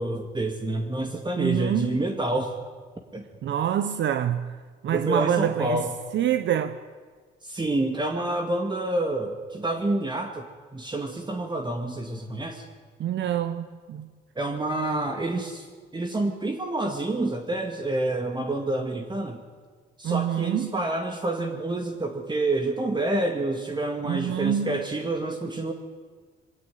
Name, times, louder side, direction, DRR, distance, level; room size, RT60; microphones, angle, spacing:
voice 1, 0.0-2.5 3.1-3.2 4.9-5.9 7.4-10.5 10.7-12.7 14.4-15.7 15.9-19.4 20.0-25.7, right 2 dB, 25° right, 2.2 m, -28 dB
voice 2, 1.4-2.0 3.4-4.5 4.8-5.8 6.1-6.8 13.0-14.1 20.0-20.8 24.0-24.8, right 10 dB, 65° right, 1.0 m, -26 dB
22.5 x 16.5 x 9.2 m
cardioid pair, 90°, 20 cm